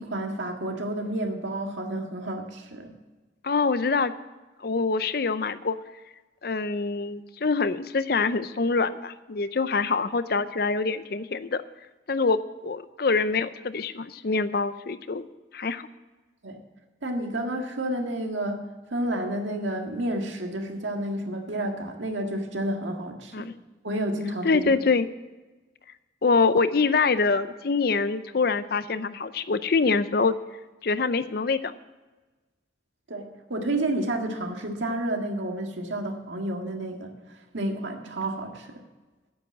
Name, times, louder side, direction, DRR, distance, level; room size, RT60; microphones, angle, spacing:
voice 1, 0.0-2.9 16.4-16.6 17.0-23.5 23.8-24.7 33.1-38.8, right 1 dB, 85° right, 3 dB, 1.8 m, -30 dB
voice 2, 3.4-4.1 4.6-5.8 6.4-11.6 12.1-15.3 15.5-15.9 23.3-23.5 24.4-25.1 26.2-30.3 30.8-31.7, left 4 dB, 55° left, 14 dB, 0.5 m, -25 dB
9.5 x 8.7 x 7.8 m, 1.2 s
head